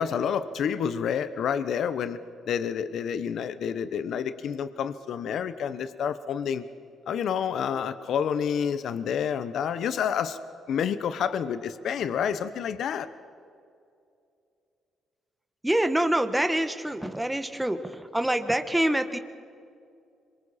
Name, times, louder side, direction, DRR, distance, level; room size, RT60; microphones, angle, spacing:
voice 1, 0.0-2.2 2.5-6.6 7.1-10.4 10.7-13.1, left 7 dB, 70° left, 12 dB, 0.9 m, -29 dB
voice 2, 15.6-19.2, right 1 dB, 5° right, 8 dB, 1.3 m, -26 dB
26.0 x 23.5 x 4.3 m, 2.4 s
cardioid pair, 90°, 0 cm